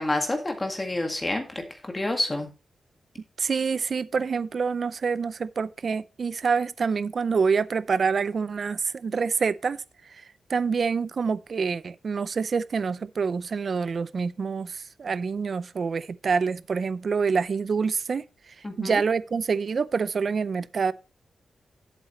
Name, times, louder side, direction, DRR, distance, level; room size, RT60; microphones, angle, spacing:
voice 1, 0.0-2.5 18.6-19.0, left 1 dB, 20° left, 1.8 m, -28 dB
voice 2, 3.4-9.8 10.5-18.2 18.8-20.9, right 5 dB, 50° right, 0.5 m, -26 dB
11.0 x 8.3 x 3.1 m
wide cardioid pair, 135°, 0 cm